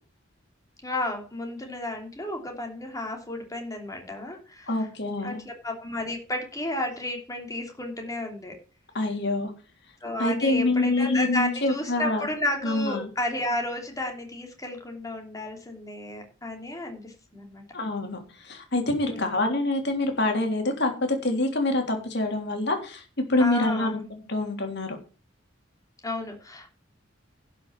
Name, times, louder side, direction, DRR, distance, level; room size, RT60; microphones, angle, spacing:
voice 1, 0.8-4.9 5.2-8.5 10.0-17.6 19.1-19.4 23.4-24.0 26.0-26.7, left 1 dB, 15° left, 2 dB, 3.0 m, -32 dB
voice 2, 4.7-5.4 8.9-9.5 10.2-12.2 12.6-13.1 17.7-23.0 23.3-25.0, left 2 dB, 55° left, 4 dB, 3.3 m, -26 dB
11.5 x 6.2 x 7.3 m, 0.36 s
head